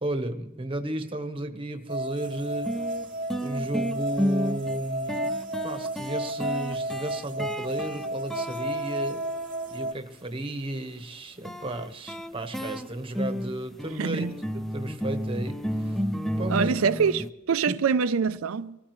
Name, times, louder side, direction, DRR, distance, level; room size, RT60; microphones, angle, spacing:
voice 1, 0.0-2.8 3.4-5.3 5.6-9.3 9.7-14.3 14.5-16.0 16.4-16.7 17.7-17.8, right 1 dB, 25° right, 1.0 m, -33 dB
sound 1, 1.9-9.9, right 1 dB, 40° right, 0.7 m, -32 dB
sound 2, 2.2-2.3 2.7-9.9 11.4-17.3, equal, ahead, 0.5 m, -32 dB
voice 2, 14.0-14.4 16.5-18.8, right 6 dB, 90° right, 0.5 m, -25 dB
24.0 x 16.0 x 3.1 m
head